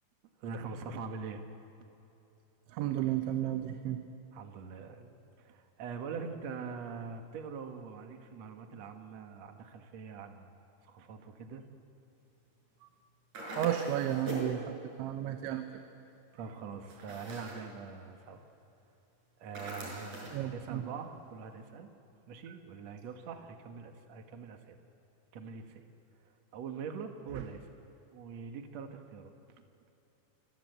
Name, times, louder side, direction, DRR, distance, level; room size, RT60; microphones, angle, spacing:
voice 1, 0.4-1.4 4.3-10.5 10.8-11.6 16.3-18.4 19.4-21.9 22.3-24.8 25.3-25.8 26.2-27.7 28.1-29.3, right 5 dB, 55° right, 5 dB, 2.0 m, -43 dB
voice 2, 2.7-4.0 13.6-15.7 20.3-20.8 27.4-27.5, right 12 dB, 85° right, 7 dB, 3.4 m, -33 dB
sound 1, 13.3-14.6 16.9-17.7 19.5-20.4, right 1 dB, 40° right, 7.0 m, -41 dB
29.5 x 24.5 x 8.1 m, 2.9 s
omnidirectional pair, 5.3 m